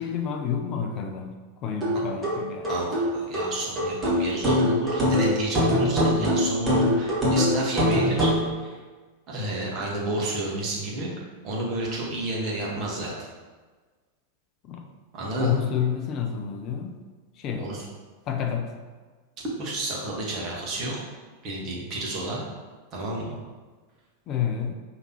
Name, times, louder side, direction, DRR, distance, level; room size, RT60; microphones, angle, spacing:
voice 1, 0.0-2.7 14.6-14.9 15.4-17.0 17.4-17.7 18.3-18.7 24.3-24.7, left 8 dB, 35° left, 4 dB, 0.4 m, -29 dB
sound 1, 1.8-8.5, equal, 20° right, 1.3 m, -23 dB
voice 2, 2.7-8.3 8.6-8.8 9.3-11.1 11.4-13.3 15.1-15.5 17.5-17.8 19.6-21.0 21.4-22.4 22.9-23.4, right 1 dB, 35° right, -3 dB, 1.1 m, -30 dB
5.0 x 2.9 x 2.9 m, 1.4 s
figure-of-eight pair, 90°, 0 cm